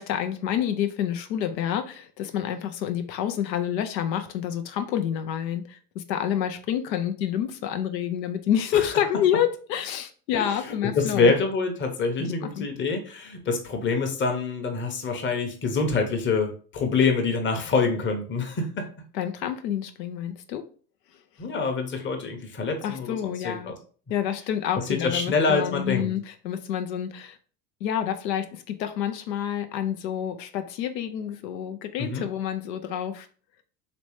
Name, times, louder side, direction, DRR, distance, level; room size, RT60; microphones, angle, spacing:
voice 1, 0.0-11.3 12.2-12.7 19.1-20.7 22.8-23.7 24.1-27.4 27.8-33.3, left 10 dB, 85° left, 0.6 m, -28 dB
voice 2, 10.3-18.9 21.4-23.7 25.0-26.1 32.0-32.2, left 4 dB, 25° left, 0.8 m, -26 dB
3.1 x 3.0 x 3.0 m
hypercardioid pair, 85°, 49 cm